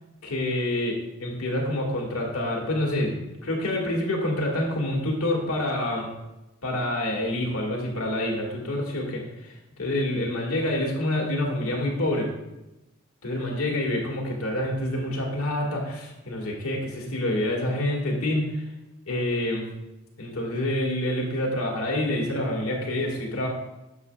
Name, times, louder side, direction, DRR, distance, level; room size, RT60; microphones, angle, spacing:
voice 1, 0.2-6.1 6.6-12.3 13.2-18.6 19.1-19.7 20.2-23.5, left 1 dB, 80° left, 0 dB, 1.9 m, -27 dB
9.8 x 6.9 x 2.4 m, 0.97 s
head